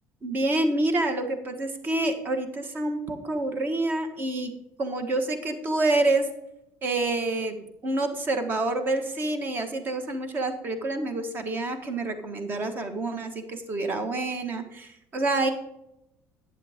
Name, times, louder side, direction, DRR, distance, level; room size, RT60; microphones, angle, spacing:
voice 1, 0.2-4.5 4.8-6.3 6.8-15.5, right 2 dB, 35° right, 7 dB, 1.5 m, -27 dB
11.0 x 9.1 x 3.6 m, 0.86 s
cardioid pair, 145°, 6 cm